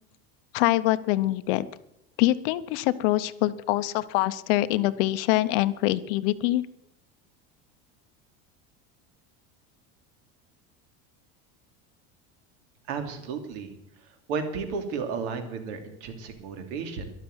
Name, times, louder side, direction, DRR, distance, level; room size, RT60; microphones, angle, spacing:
voice 1, 0.5-1.7 2.2-6.6, left 16 dB, 55° left, 14 dB, 0.8 m, -24 dB
voice 2, 12.9-13.7 14.3-17.1, right 5 dB, 75° right, 6 dB, 3.1 m, -33 dB
12.5 x 12.0 x 8.1 m, 0.80 s
cardioid pair, 175°, 33 cm